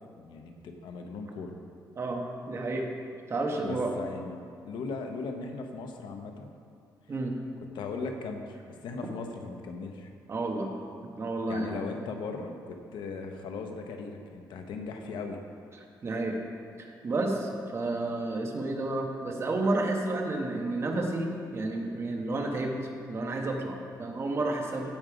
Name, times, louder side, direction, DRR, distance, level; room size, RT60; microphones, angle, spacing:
voice 1, 0.2-1.6 3.6-6.5 7.7-10.1 11.5-15.4, left 4 dB, 85° left, 4 dB, 1.0 m, -38 dB
voice 2, 2.0-2.9 3.3-3.9 7.1-7.3 10.3-10.7 11.2-11.8 16.0-16.4 16.8-22.7 23.1-24.9, right 2 dB, 35° right, 1 dB, 1.3 m, -31 dB
15.5 x 5.2 x 5.0 m, 2.4 s
cardioid pair, 135°, 8 cm